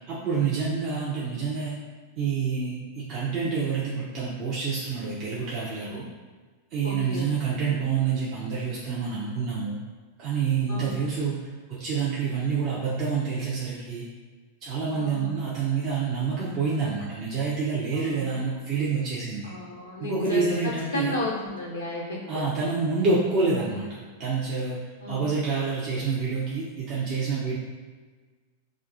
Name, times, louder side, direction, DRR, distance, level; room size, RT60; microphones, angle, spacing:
voice 1, 0.1-1.8 2.2-6.0 6.7-9.7 10.2-11.4 11.7-14.0 14.6-19.5 20.0-21.2 22.3-23.9 24.2-24.8 25.1-27.6, right 5 dB, 35° right, -7 dB, 0.6 m, -27 dB
voice 2, 6.8-7.6 10.7-11.1 14.9-15.4 17.9-18.4 19.4-22.6 25.0-25.3, left 1 dB, 70° left, -4 dB, 0.5 m, -33 dB
2.6 x 2.4 x 3.7 m, 1.4 s
figure-of-eight pair, 90°, 0 cm